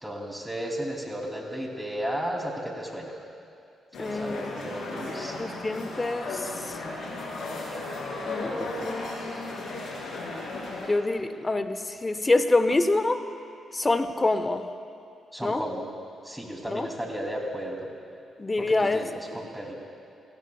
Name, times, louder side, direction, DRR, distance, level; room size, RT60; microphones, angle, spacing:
voice 1, 0.0-3.2 4.0-5.4 15.3-15.9 16.2-17.9 18.6-19.7, equal, 5° right, 0 dB, 2.8 m, -34 dB
sound 1, 3.9-10.9, left 2 dB, 70° left, 2.5 m, -35 dB
voice 2, 4.0-4.5 5.4-6.5 8.3-9.5 10.9-13.2 13.7-14.6 15.4-15.6 16.7-16.9 18.4-19.0 19.3-19.4, left 2 dB, 25° left, 10 dB, 0.8 m, -26 dB
18.5 x 16.0 x 2.3 m, 2.5 s
supercardioid pair, 55°, 0 cm